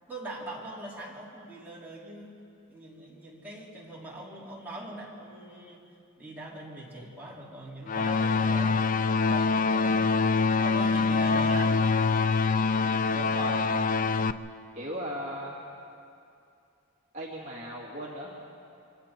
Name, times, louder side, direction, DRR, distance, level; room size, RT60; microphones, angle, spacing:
voice 1, 0.1-2.4 2.7-5.9 6.2-10.2 10.5-11.9, right 1 dB, 10° right, -6 dB, 3.5 m, -42 dB
sound 1, 7.9-14.3, left 4 dB, 35° left, 0.4 m, -25 dB
voice 2, 13.1-13.7 14.8-15.6 17.1-18.3, equal, 30° right, -5 dB, 2.2 m, -37 dB
27.0 x 25.0 x 4.5 m, 2.5 s
head